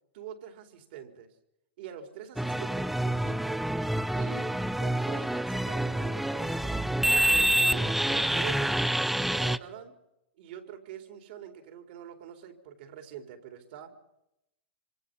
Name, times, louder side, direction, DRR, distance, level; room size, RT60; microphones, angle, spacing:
voice 1, 0.1-1.3 1.8-3.6 4.1-6.9 7.3-8.8 9.2-10.0 10.4-14.0, right 9 dB, 60° right, 7 dB, 4.3 m, -44 dB
sound 1, 2.4-9.6, right 1 dB, ahead, 0.7 m, -27 dB
26.0 x 25.5 x 5.6 m, 0.87 s
hypercardioid pair, 115°, 6 cm